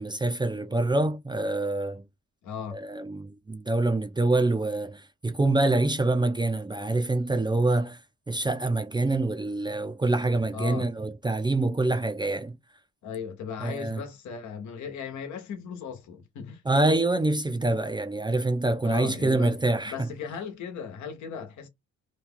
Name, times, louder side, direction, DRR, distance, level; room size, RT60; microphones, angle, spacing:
voice 1, 0.0-2.0 2.7-8.0 8.3-12.6 13.6-14.0 16.7-19.9, right 2 dB, 15° right, 0.5 m, -26 dB
voice 2, 2.4-2.8 10.5-10.9 13.0-16.6 18.8-19.5 19.9-21.7, left 7 dB, 70° left, 1.1 m, -37 dB
3.0 x 2.3 x 3.6 m
cardioid pair, 90°, 30 cm